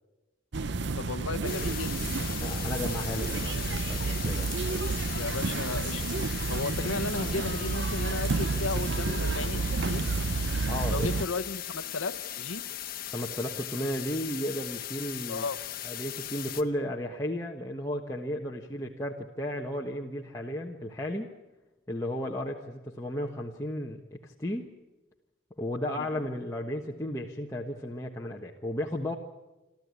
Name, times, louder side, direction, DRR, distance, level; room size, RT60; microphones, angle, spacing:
sound 1, 0.5-11.3, right 3 dB, 60° right, 0.7 m, -30 dB
voice 1, 1.0-2.3 5.1-6.0 6.5-10.1 10.9-12.6 15.3-15.6 25.9-26.1, left 3 dB, 90° left, 13 dB, 1.0 m, -35 dB
sound 2, 1.4-16.6, left 12 dB, 50° left, 1.3 m, -38 dB
voice 2, 2.4-4.8 10.7-11.1 13.1-15.4 15.8-21.3 21.9-24.7 25.6-29.2, left 1 dB, 15° left, -2 dB, 1.3 m, -34 dB
28.0 x 13.5 x 9.7 m, 1.1 s
head